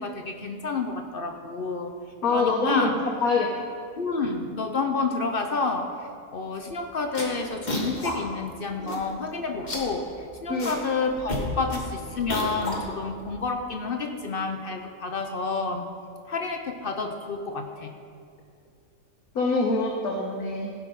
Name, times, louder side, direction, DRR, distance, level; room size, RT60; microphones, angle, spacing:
voice 1, 0.0-1.9 2.3-2.9 4.0-5.9 6.3-10.1 10.4-15.9 16.3-17.9, left 4 dB, 50° left, 5 dB, 0.7 m, -29 dB
voice 2, 2.2-2.9 3.2-3.5 10.5-10.7 19.3-20.7, left 3 dB, 90° left, -1 dB, 1.5 m, -24 dB
sound 1, 6.6-6.7 7.0-8.1 8.5-8.6 8.8-9.3 9.5-10.8 11.1-13.3, left 1 dB, 30° left, 1.6 m, -32 dB
15.5 x 6.1 x 5.3 m, 2.3 s
omnidirectional pair, 1.5 m